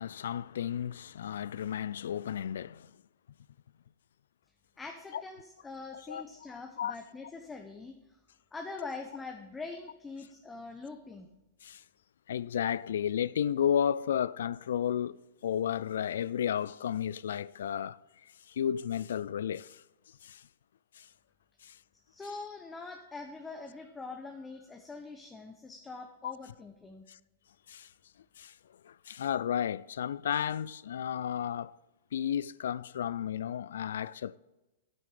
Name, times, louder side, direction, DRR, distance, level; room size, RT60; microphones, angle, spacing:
voice 1, 0.0-2.9 5.1-5.2 6.1-6.2 6.8-6.9 11.6-11.8 12.3-18.0 18.5-19.8 20.2-20.4 20.9-21.1 21.6-21.8 26.2-26.3 27.1-27.2 27.7-27.9 28.4-28.5 28.8-31.8 32.1-34.4, left 9 dB, 75° left, 0.3 m, -33 dB
voice 2, 4.8-8.0 8.5-11.3 22.1-27.0, left 3 dB, 15° left, 0.9 m, -44 dB
10.0 x 9.3 x 4.9 m
hypercardioid pair, 115°, 0 cm